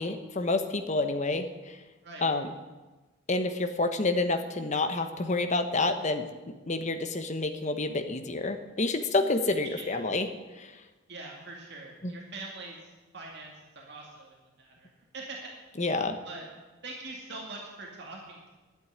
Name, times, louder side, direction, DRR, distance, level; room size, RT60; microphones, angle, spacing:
voice 1, 0.0-1.8 2.2-2.5 3.3-10.3 10.6-10.7 12.0-12.1 15.8-16.2, left 2 dB, 35° left, 7 dB, 1.0 m, -29 dB
voice 2, 11.1-12.8 13.1-15.4 16.2-16.5 16.8-18.5, right 3 dB, 55° right, -1 dB, 2.1 m, -43 dB
11.0 x 8.6 x 9.7 m, 1.2 s
head